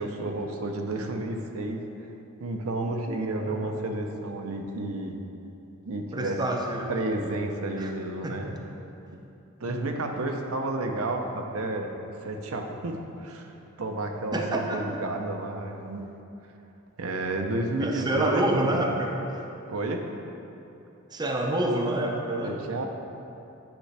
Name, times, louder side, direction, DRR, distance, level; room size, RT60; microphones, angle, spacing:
voice 1, 0.0-1.8 2.4-5.2 5.8-6.4 6.9-8.5 9.6-13.5 13.8-16.1 17.0-18.9 19.7-20.0 22.4-22.9, right 2 dB, 75° right, 3 dB, 0.6 m, -31 dB
voice 2, 6.1-6.9 7.8-7.9 8.2-8.5 9.7-10.0 14.3-15.0 17.8-19.4 21.1-22.6, right 1 dB, 20° right, 0 dB, 0.5 m, -28 dB
8.9 x 5.8 x 3.4 m, 2.8 s
head